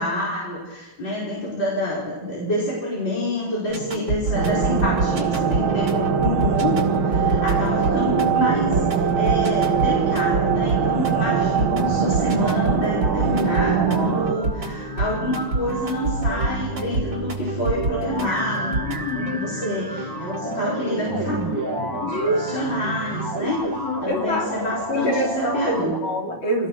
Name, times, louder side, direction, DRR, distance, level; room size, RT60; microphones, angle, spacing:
voice 1, 0.0-18.7 19.1-21.4 21.9-26.0, left 1 dB, 60° left, -6 dB, 5.8 m, -27 dB
sound 1, 3.7-23.4, right 2 dB, 60° right, 3.6 m, -29 dB
sound 2, 4.3-14.3, right 7 dB, 85° right, 2.0 m, -22 dB
sound 3, 11.9-26.0, right 2 dB, 15° right, 0.7 m, -32 dB
voice 2, 18.6-19.5 20.1-20.7 22.0-22.4 23.6-24.5 24.9-26.7, left 1 dB, 75° left, -2 dB, 4.3 m, -26 dB
26.5 x 18.5 x 6.1 m, 1.2 s
omnidirectional pair, 2.2 m